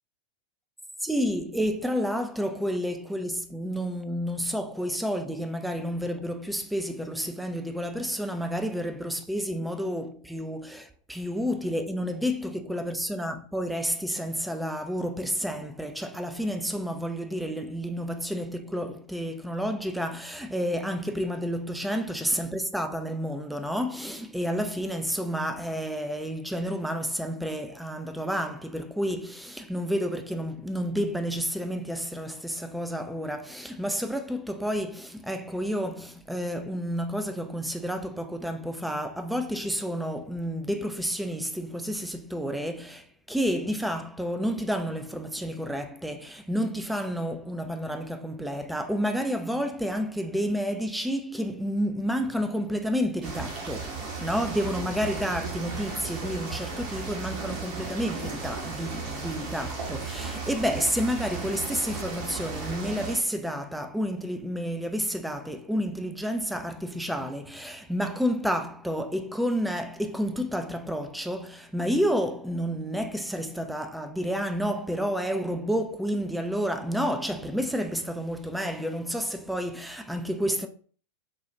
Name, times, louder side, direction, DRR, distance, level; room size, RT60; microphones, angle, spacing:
voice 1, 1.0-80.7, equal, ahead, 0.4 m, -30 dB
sound 1, 53.2-63.2, right 4 dB, 40° right, 1.2 m, -35 dB
4.2 x 2.3 x 2.8 m
figure-of-eight pair, 90°, 0 cm